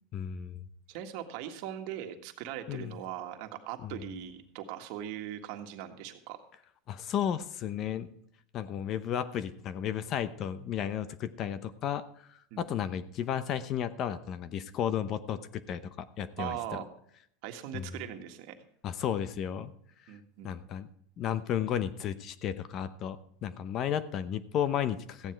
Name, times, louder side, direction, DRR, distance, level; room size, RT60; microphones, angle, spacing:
voice 1, 0.1-0.6 2.7-2.9 3.8-4.0 6.9-8.1 8.5-12.0 12.6-16.8 17.7-17.9 18.8-19.7 20.4-20.9 21.2-25.3, left 9 dB, 40° left, 15 dB, 0.8 m, -33 dB
voice 2, 0.9-6.4 12.5-12.9 16.4-16.9 17.4-18.6 20.1-20.5, right 11 dB, 60° right, 6 dB, 1.7 m, -40 dB
14.5 x 9.6 x 4.6 m, 0.67 s
supercardioid pair, 130°, 0 cm